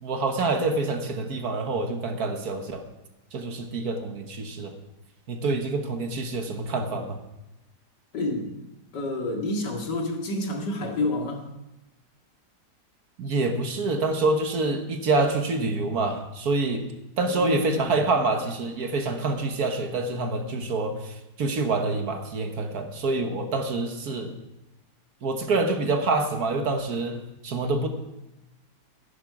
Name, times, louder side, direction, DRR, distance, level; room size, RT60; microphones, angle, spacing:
voice 1, 0.0-2.8 3.3-4.7 5.3-7.2 13.2-16.8 17.2-24.3 25.2-27.9, right 3 dB, 65° right, 6 dB, 1.7 m, -26 dB
voice 2, 8.1-8.5 8.9-11.5 17.2-18.0, left 2 dB, 90° left, 1 dB, 2.6 m, -29 dB
14.5 x 11.0 x 4.8 m, 0.96 s
omnidirectional pair, 1.8 m